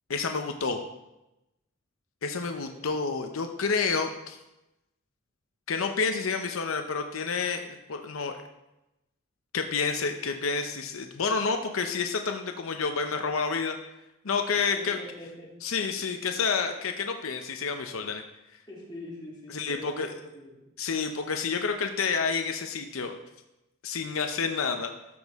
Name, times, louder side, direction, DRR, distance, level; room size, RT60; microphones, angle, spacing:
voice 1, 0.1-0.8 2.2-4.4 5.7-8.4 9.5-13.8 14.2-15.0 15.6-18.2 19.5-20.1 20.8-23.1 23.8-24.9, left 5 dB, 85° left, 5 dB, 0.7 m, -29 dB
voice 2, 14.7-15.5 18.7-20.6, left 1 dB, 20° left, -6 dB, 2.7 m, -44 dB
13.5 x 6.2 x 3.6 m, 0.93 s
head